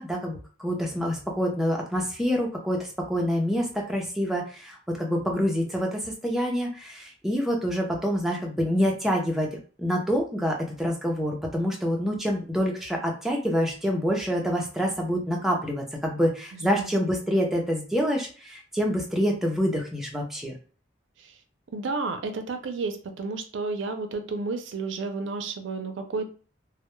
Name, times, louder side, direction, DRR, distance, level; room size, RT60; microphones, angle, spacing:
voice 1, 0.0-9.5 9.8-20.5, equal, ahead, -1 dB, 0.4 m, -27 dB
voice 2, 16.5-17.1 21.2-21.4 21.7-26.3, right 3 dB, 70° right, 7 dB, 0.4 m, -32 dB
2.2 x 2.0 x 2.9 m, 0.38 s
head